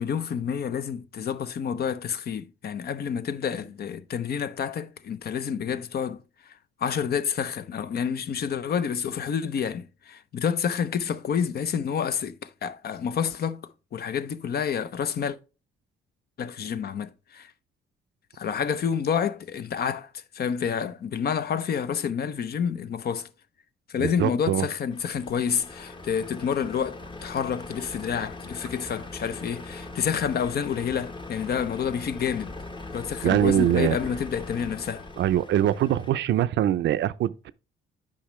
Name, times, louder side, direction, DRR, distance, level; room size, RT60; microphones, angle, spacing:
voice 1, 0.0-6.5 6.8-13.6 13.9-15.4 16.4-17.5 18.3-23.3 23.9-32.5 32.9-35.1, left 7 dB, 50° left, 0.6 m, -29 dB
voice 2, 24.0-24.7 33.2-34.0 35.2-37.5, right 12 dB, 65° right, 0.5 m, -23 dB
Truck, 24.9-36.1, left 2 dB, 25° left, 1.1 m, -40 dB
8.5 x 5.2 x 3.1 m
cardioid pair, 90°, 20 cm